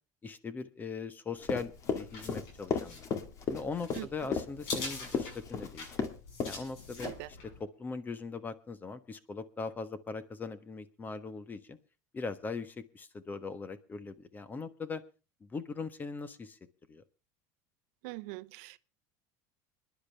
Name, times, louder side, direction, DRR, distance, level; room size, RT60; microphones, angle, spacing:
voice 1, 0.2-3.0 3.5-6.0 6.4-11.8 12.1-15.0 15.4-16.6 16.9-17.0, left 4 dB, 20° left, 1.3 m, -40 dB
sound 1, 1.4-7.6, left 3 dB, 70° left, 7.9 m, -45 dB
Run, 1.4-6.1 6.4-6.6 7.0-7.3, left 6 dB, 40° left, 2.0 m, -33 dB
voice 2, 18.0-18.8, right 23 dB, 75° right, 0.6 m, -42 dB
26.0 x 10.5 x 3.5 m
supercardioid pair, 130°, 9 cm